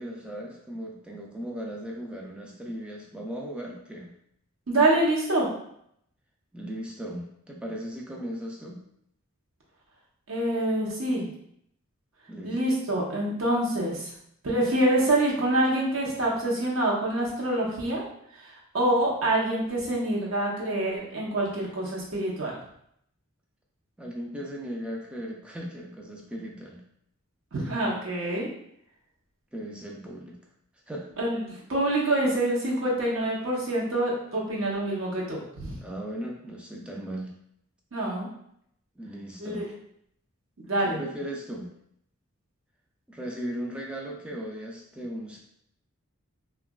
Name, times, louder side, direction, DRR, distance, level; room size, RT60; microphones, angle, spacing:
voice 1, 0.0-4.1 6.5-8.8 12.3-12.6 24.0-26.8 29.5-30.4 30.9-31.1 35.8-37.3 39.0-39.7 40.9-41.7 43.1-45.4, equal, 5° right, -2 dB, 0.3 m, -37 dB
voice 2, 4.7-5.5 10.3-11.3 12.4-14.1 14.4-18.0 18.4-22.5 27.5-28.5 31.2-35.7 37.9-38.3 39.4-39.7 40.6-41.0, right 1 dB, 65° right, -4 dB, 0.7 m, -26 dB
2.8 x 2.3 x 2.2 m, 0.72 s
head